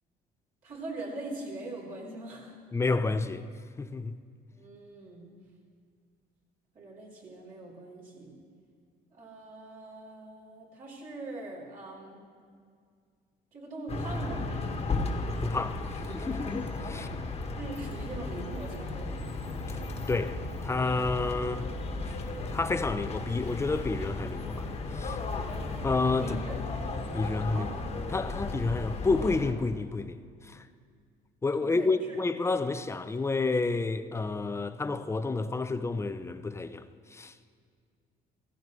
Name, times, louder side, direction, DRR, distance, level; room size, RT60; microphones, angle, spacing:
voice 1, 0.6-2.5 4.5-5.3 6.7-8.4 9.1-12.2 13.5-14.5 16.9-17.1 17.6-19.3 26.2-27.9 31.6-32.2, right 2 dB, 55° right, 3.9 m, -42 dB
voice 2, 2.7-3.4 3.8-4.2 15.4-15.8 16.1-17.1 19.7-19.8 20.1-21.7 22.5-24.7 24.9-25.2 25.8-26.4 27.1-27.7 28.1-30.2 30.4-30.6 31.4-36.8 37.1-37.5, left 3 dB, 15° left, 0.5 m, -30 dB
sound 1, 13.9-29.5, left 3 dB, 35° left, 1.4 m, -35 dB
15.5 x 15.0 x 3.2 m
cardioid pair, 110°, 17 cm